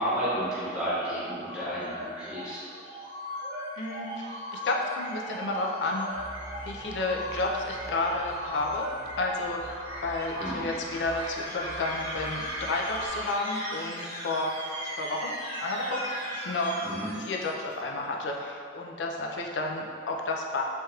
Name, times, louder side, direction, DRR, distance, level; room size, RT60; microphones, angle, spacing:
voice 1, 0.0-2.6 10.4-10.6 16.8-17.1, equal, 5° right, -11 dB, 0.6 m, -31 dB
sound 1, 1.2-17.7, equal, 75° right, 0.8 m, -38 dB
voice 2, 3.8-6.1 6.7-8.9 9.2-9.8 10.0-14.6 14.8-16.8 17.1-20.6, left 2 dB, 85° left, 0 dB, 0.4 m, -31 dB
sound 2, 6.1-13.1, right 1 dB, 30° right, 0.9 m, -47 dB
3.3 x 2.8 x 2.3 m, 2.2 s
head